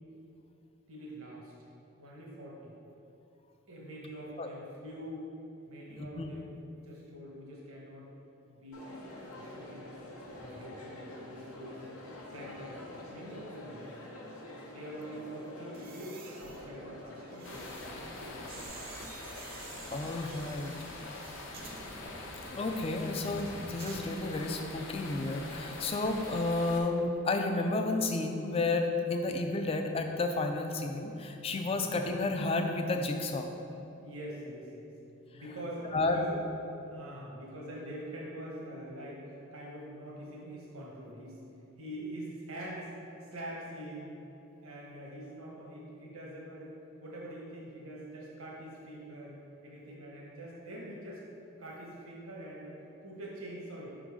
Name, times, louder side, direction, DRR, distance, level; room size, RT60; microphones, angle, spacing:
voice 1, 0.9-1.5 2.0-2.8 3.7-5.3 5.7-8.1 8.5-9.0 9.3-10.0 10.3-12.0 12.3-13.8 14.7-18.7 31.6-31.8 34.0-34.9 35.3-36.4 36.9-41.4 41.8-42.9 43.3-44.2 44.6-46.7 47.0-51.2 51.6-53.9, right 1 dB, 80° right, -4 dB, 1.1 m, -44 dB
voice 2, 5.9-6.3 19.9-20.9 22.5-33.5 35.9-36.2, left 2 dB, 25° left, 5 dB, 0.3 m, -31 dB
Crowd, 8.7-18.7, left 1 dB, 85° left, 0.9 m, -47 dB
sound 1, 15.6-24.7 25.0-25.3, right 4 dB, 40° right, 0.5 m, -51 dB
sound 2, 17.4-26.8, left 2 dB, 60° left, 0.7 m, -44 dB
5.3 x 3.8 x 4.8 m, 2.9 s
head